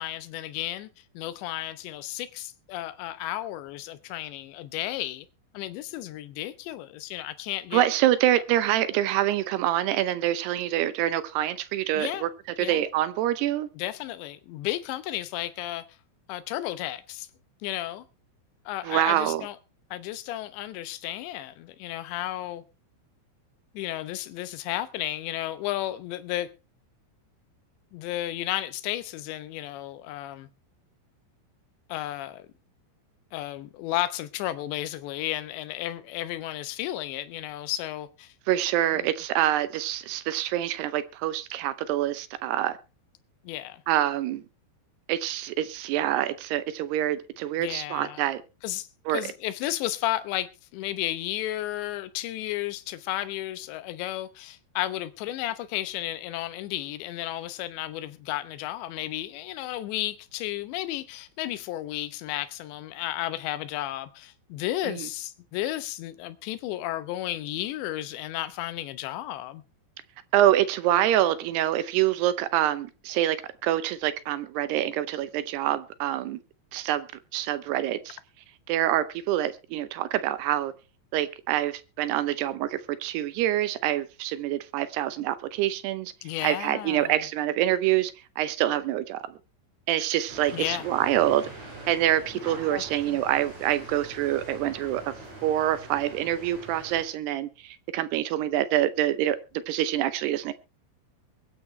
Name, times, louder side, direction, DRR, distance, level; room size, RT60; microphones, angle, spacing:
voice 1, 0.0-5.3 5.5-7.8 11.9-12.2 12.6-12.8 13.7-16.0 16.3-17.3 17.6-18.1 18.7-19.6 19.9-22.6 23.7-26.5 27.9-30.5 31.9-32.5 33.3-38.3 38.9-39.1 43.4-43.8 47.6-48.3 48.6-69.6 86.2-87.2 90.1-90.2 90.5-90.9 92.7-93.2, left 14 dB, 75° left, 3.0 m, -33 dB
voice 2, 7.7-12.3 12.6-13.7 18.8-19.4 38.5-42.8 43.9-44.4 45.1-48.4 49.1-49.2 64.8-65.1 70.3-73.4 73.6-76.4 76.7-77.1 77.3-78.2 78.7-80.7 81.1-86.1 86.4-89.4 89.9-91.5 91.9-95.1 95.4-99.4 99.7-100.5, right 13 dB, 80° right, 2.5 m, -26 dB
sound 1, 90.3-97.0, right 2 dB, 35° right, 6.2 m, -43 dB
22.5 x 9.6 x 3.2 m
omnidirectional pair, 5.5 m